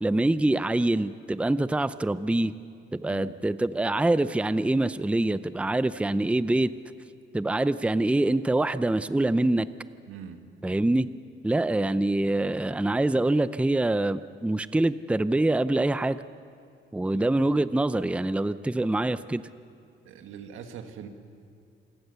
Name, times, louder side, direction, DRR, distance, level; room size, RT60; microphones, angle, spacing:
voice 1, 0.0-2.5 2.9-6.7 7.3-9.7 10.6-11.1 11.4-16.2 16.9-19.4, right 2 dB, 5° right, 14 dB, 0.6 m, -25 dB
voice 2, 10.1-10.4 17.1-17.3 20.1-21.1, right 8 dB, 90° right, 6 dB, 1.8 m, -42 dB
27.5 x 19.0 x 6.9 m, 2.3 s
cardioid pair, 90°, 20 cm